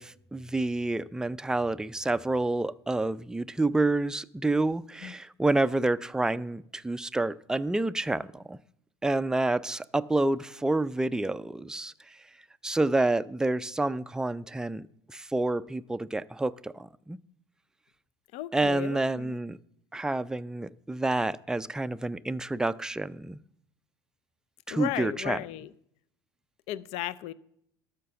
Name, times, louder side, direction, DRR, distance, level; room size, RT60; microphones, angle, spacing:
voice 1, 0.0-8.6 9.0-11.9 12.6-14.8 15.1-17.2 18.5-19.6 19.9-23.4 24.7-25.4, right 2 dB, 5° right, 0.4 m, -28 dB
voice 2, 18.3-19.4 24.7-25.7 26.7-27.3, left 15 dB, 55° left, 0.5 m, -35 dB
12.0 x 5.8 x 6.5 m
hypercardioid pair, 75°, 13 cm